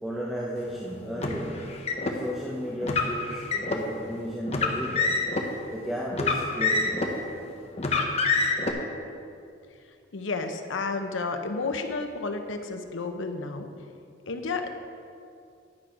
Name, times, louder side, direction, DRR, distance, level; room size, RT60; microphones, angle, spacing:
voice 1, 0.0-5.2 5.7-7.2, equal, ahead, -4 dB, 0.6 m, -34 dB
Car, 1.2-2.2 2.8-3.8 4.5-5.5 6.1-7.2 7.8-8.7, left 3 dB, 35° left, 0.7 m, -26 dB
voice 2, 10.1-13.7 14.3-14.7, left 3 dB, 85° left, 6 dB, 0.7 m, -31 dB
10.5 x 6.1 x 4.9 m, 2.4 s
head